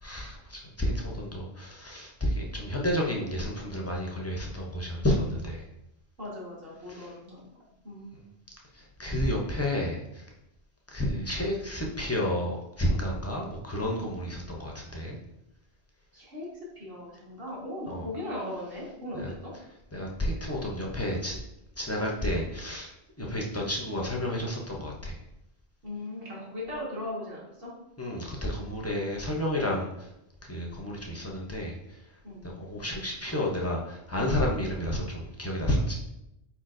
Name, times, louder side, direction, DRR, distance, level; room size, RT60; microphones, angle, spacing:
voice 1, 0.0-5.6 6.9-7.1 8.7-10.2 10.9-15.2 17.9-18.1 19.1-19.3 19.9-21.4 21.8-22.9 23.2-25.2 28.0-30.1 30.5-31.7 32.4-36.0, left 1 dB, 20° left, -1 dB, 0.4 m, -31 dB
voice 2, 6.2-7.4 7.8-8.1 16.1-16.5 16.7-19.5 23.2-23.4 25.8-27.7 32.2-32.5, left 1 dB, 55° right, -6 dB, 1.7 m, -38 dB
4.4 x 4.3 x 2.5 m, 0.85 s
omnidirectional pair, 1.1 m